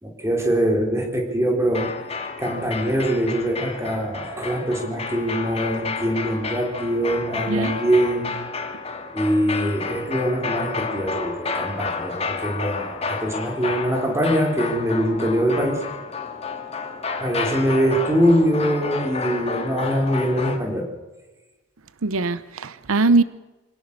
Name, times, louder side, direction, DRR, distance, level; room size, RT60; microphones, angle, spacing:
voice 1, 0.0-1.9 2.4-8.3 9.1-15.8 17.2-20.9, equal, 15° right, 1 dB, 3.8 m, -23 dB
sound 1, 1.7-20.6, left 4 dB, 30° left, 2.2 m, -31 dB
voice 2, 22.0-23.2, right 3 dB, 85° right, 15 dB, 0.8 m, -20 dB
25.5 x 17.5 x 6.7 m, 1.1 s
head